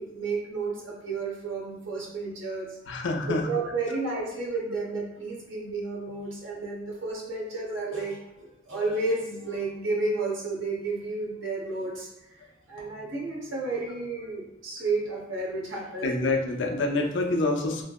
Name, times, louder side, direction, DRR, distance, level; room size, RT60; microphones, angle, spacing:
voice 1, 0.0-2.8 3.2-12.1 12.7-16.3, right 3 dB, 85° right, -3 dB, 0.9 m, -32 dB
voice 2, 2.9-3.5 16.0-17.8, left 2 dB, 65° left, 2 dB, 0.5 m, -26 dB
3.2 x 2.7 x 2.3 m, 0.88 s
head